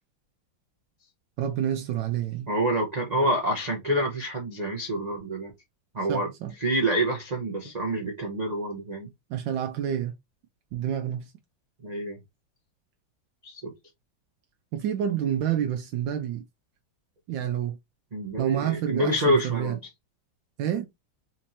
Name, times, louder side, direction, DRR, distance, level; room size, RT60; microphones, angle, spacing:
voice 1, 1.4-2.5 6.1-6.5 9.3-10.1 10.7-11.3 14.7-16.4 17.3-17.8 18.4-19.8 20.6-20.9, right 10 dB, 75° right, 1.2 m, -28 dB
voice 2, 2.5-5.5 5.9-6.3 6.6-9.1 11.8-12.2 13.4-13.7 18.1-19.8, right 1 dB, 55° right, 0.4 m, -27 dB
4.3 x 2.9 x 2.6 m
omnidirectional pair, 2.1 m